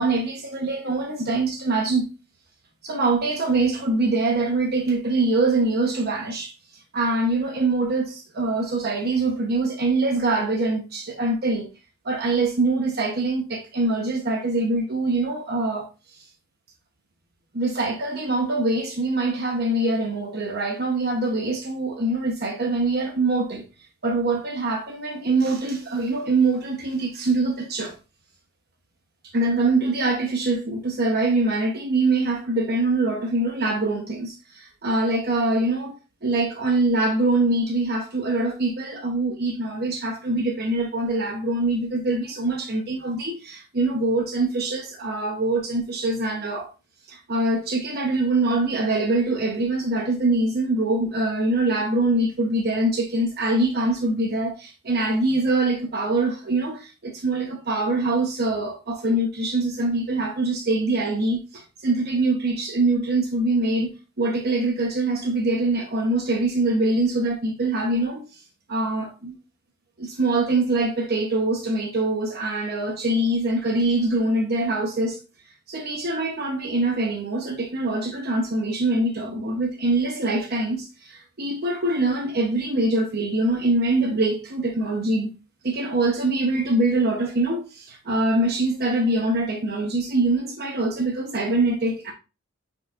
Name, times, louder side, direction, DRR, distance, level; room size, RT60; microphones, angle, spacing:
voice 1, 0.0-2.0 2.8-6.5 6.9-11.7 12.0-16.3 17.5-23.6 24.0-27.9 29.2-36.0 36.2-46.7 47.1-63.9 64.2-68.4 68.7-69.3 70.0-75.2 75.7-85.3 85.6-92.1, right 2 dB, 50° right, 1.0 m, -24 dB
9.0 x 4.6 x 2.5 m
head